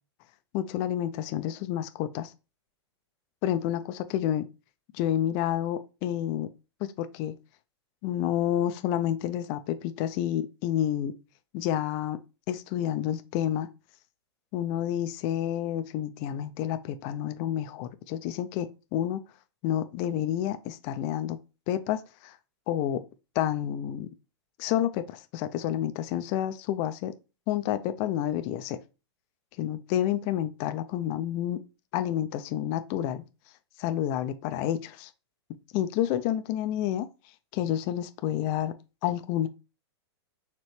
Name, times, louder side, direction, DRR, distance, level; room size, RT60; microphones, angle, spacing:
voice 1, 0.5-2.3 3.4-4.4 4.9-6.5 6.8-7.3 8.0-11.1 11.5-12.2 12.5-13.7 14.5-19.2 19.6-21.4 21.7-22.4 22.7-23.0 23.4-24.1 24.6-27.1 27.5-28.8 29.6-31.6 31.9-33.2 33.8-35.1 35.7-37.1 37.5-38.7 39.0-39.5, left 11 dB, 40° left, 0.4 m, -29 dB
4.3 x 3.0 x 3.2 m
hypercardioid pair, 125°, 14 cm